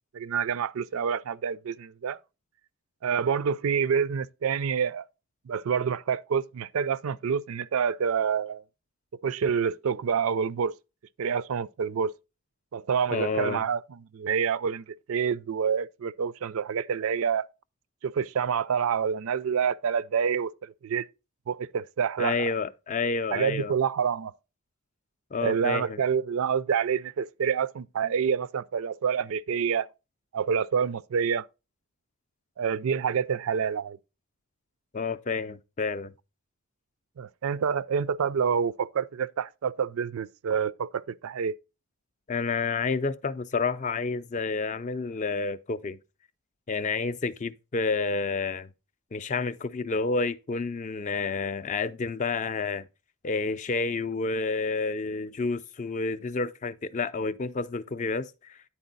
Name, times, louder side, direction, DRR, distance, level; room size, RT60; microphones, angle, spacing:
voice 1, 0.1-2.2 3.0-5.1 5.5-8.6 9.2-10.7 11.2-12.1 12.7-17.5 18.0-21.1 21.5-22.5 23.3-24.3 25.4-29.9 30.3-31.5 32.6-34.0 37.2-41.5, right 7 dB, 70° right, 0.4 m, -27 dB
voice 2, 13.1-13.6 22.2-23.7 25.3-26.0 34.9-36.1 42.3-46.0 46.7-48.7 49.1-52.9 53.2-58.6, left 4 dB, 35° left, 0.4 m, -29 dB
10.0 x 4.4 x 3.9 m
head